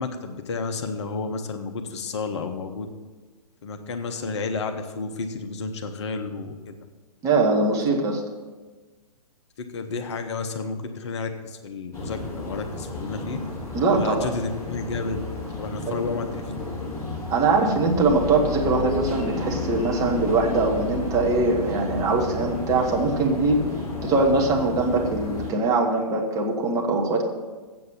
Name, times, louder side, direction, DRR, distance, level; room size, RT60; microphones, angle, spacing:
voice 1, 0.0-2.9 3.6-6.7 9.6-13.4 13.9-15.2 15.6-16.8, left 4 dB, 45° left, 6 dB, 0.9 m, -31 dB
voice 2, 7.2-8.2 13.7-14.3 15.9-16.0 17.3-23.6 24.0-27.2, right 3 dB, 15° right, 0 dB, 1.2 m, -22 dB
sound 1, 11.9-25.5, left 2 dB, 15° left, 2.3 m, -32 dB
7.9 x 7.6 x 7.3 m, 1.3 s
figure-of-eight pair, 120°, 20 cm